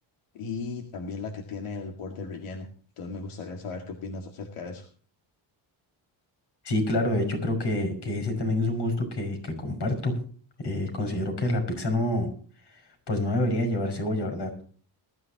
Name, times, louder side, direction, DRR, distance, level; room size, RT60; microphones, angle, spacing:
voice 1, 0.3-2.7 3.0-4.9, left 4 dB, 85° left, 3 dB, 2.1 m, -36 dB
voice 2, 6.6-10.1 10.6-12.3 13.1-14.5, left 1 dB, 55° left, 5 dB, 5.8 m, -27 dB
21.5 x 13.5 x 2.9 m, 0.43 s
cardioid pair, 120°, 49 cm